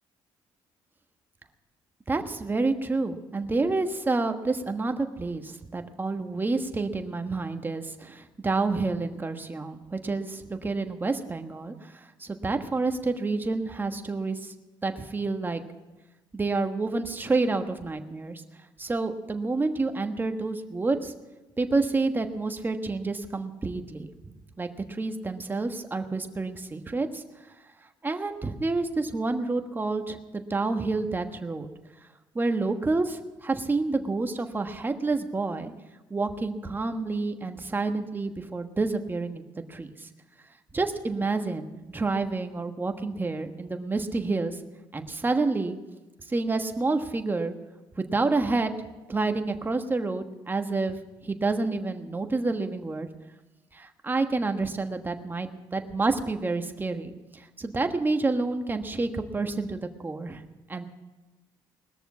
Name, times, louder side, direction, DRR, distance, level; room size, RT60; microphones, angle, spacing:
voice 1, 2.1-14.5 14.8-15.6 16.3-18.4 18.8-21.1 21.6-27.2 28.0-31.7 32.3-35.7 36.1-39.4 39.7-40.1 40.7-44.6 44.9-45.7 46.3-47.5 48.0-48.7 49.1-51.0 51.2-53.1 53.7-60.4 60.7-60.9, right 3 dB, 20° right, 6 dB, 1.3 m, -29 dB
20.0 x 6.9 x 8.3 m, 1.1 s
cardioid pair, 90°, 10 cm